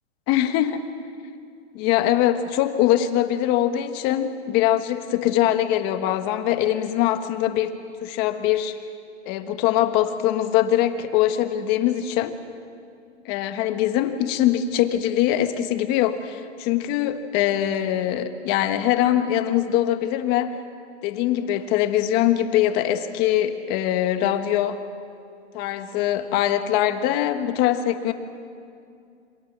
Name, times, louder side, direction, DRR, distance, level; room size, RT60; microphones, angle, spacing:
voice 1, 0.3-0.9 1.7-7.7 8.0-8.8 9.2-12.3 13.2-20.6 21.0-24.8 25.5-28.1, left 12 dB, 30° left, 8 dB, 1.5 m, -22 dB
27.5 x 26.5 x 7.5 m, 2.4 s
hypercardioid pair, 155°, 35 cm